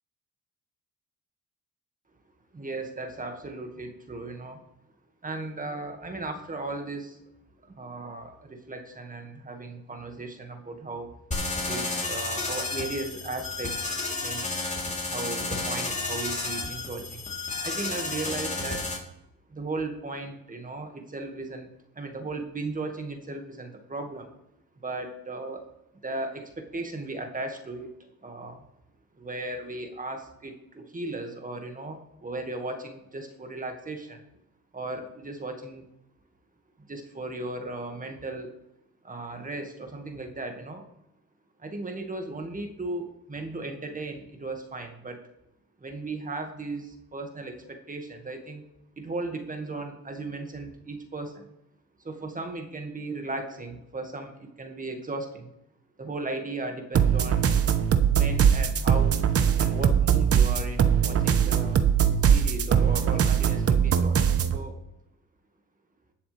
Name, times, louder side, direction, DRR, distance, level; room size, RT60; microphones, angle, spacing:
voice 1, 2.5-4.6 5.2-7.2 7.6-11.1 11.6-14.6 15.0-17.2 17.6-18.9 19.5-21.7 22.0-24.3 24.8-25.7 26.0-27.9 28.2-28.6 29.2-34.2 34.7-35.8 36.9-38.5 39.0-40.8 41.6-45.2 45.8-48.6 49.0-51.5 52.0-55.5 56.0-57.5 58.0-59.2 59.6-61.8 62.2-64.7, right 2 dB, 25° right, 4 dB, 1.9 m, -36 dB
sound 1, 11.3-19.0, left 3 dB, 25° left, 3.6 m, -31 dB
sound 2, 56.9-64.6, right 8 dB, 50° right, 1.0 m, -21 dB
20.5 x 7.0 x 3.4 m, 0.84 s
cardioid pair, 90°, 30 cm